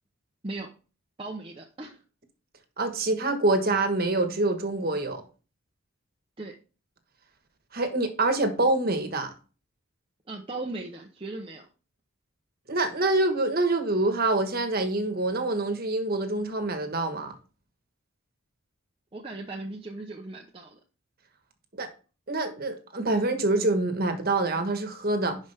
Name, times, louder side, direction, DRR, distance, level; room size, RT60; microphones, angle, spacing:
voice 1, 1.2-2.0 6.4-6.6 10.3-11.7 19.1-20.8, right 2 dB, 25° right, 0.8 m, -37 dB
voice 2, 2.8-5.2 7.7-9.3 12.7-17.3 21.8-21.9 22.3-25.4, right 2 dB, 45° right, 1.4 m, -26 dB
11.0 x 5.1 x 3.4 m
head